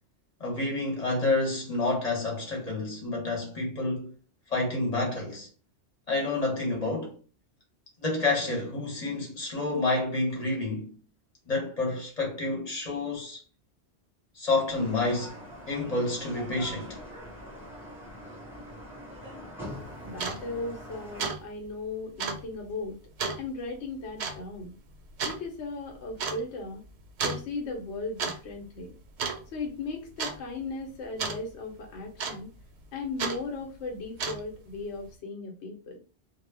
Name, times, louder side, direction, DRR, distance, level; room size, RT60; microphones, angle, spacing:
voice 1, 0.4-4.1 4.5-5.5 6.1-7.1 8.0-10.9 11.5-13.4 14.3-15.4 15.7-17.0, left 2 dB, 40° left, 0.7 m, -29 dB
sound 1, 14.7-21.3, equal, ahead, 0.9 m, -43 dB
sound 2, 19.7-19.8 20.1-20.4 20.8-20.9 21.2-21.4 21.7-21.8 22.2-22.4 23.2-23.4 24.2-24.4 25.2-25.4 26.2-26.4 27.2-27.4 28.0-28.4 28.6-28.9 29.2-29.7 30.2-30.4 31.2-31.4 32.2-32.6 33.2-33.4 34.0-34.6, right 5 dB, 75° right, 0.8 m, -31 dB
voice 2, 20.0-23.0 23.4-24.7 25.2-26.8 27.2-28.9 29.5-32.5 32.9-36.0, left 3 dB, 80° left, 0.9 m, -37 dB
2.1 x 2.0 x 3.2 m
omnidirectional pair, 1.1 m